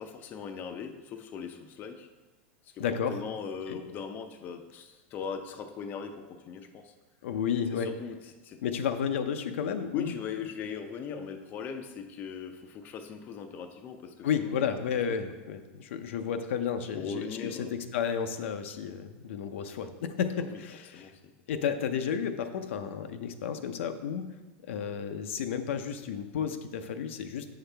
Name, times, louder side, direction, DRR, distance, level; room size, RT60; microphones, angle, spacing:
voice 1, 0.0-2.1 2.6-2.8 3.1-6.9 7.7-8.2 8.4-8.6 9.9-14.5 17.0-17.8 20.4-20.6 20.9-21.1, left 6 dB, 30° left, 6 dB, 0.5 m, -39 dB
voice 2, 2.8-3.2 3.7-3.8 7.2-7.9 8.6-10.1 14.2-21.1 21.5-24.2 24.7-27.5, left 7 dB, 80° left, 8 dB, 0.6 m, -32 dB
7.9 x 5.7 x 3.3 m, 1.2 s
supercardioid pair, 150°, 7 cm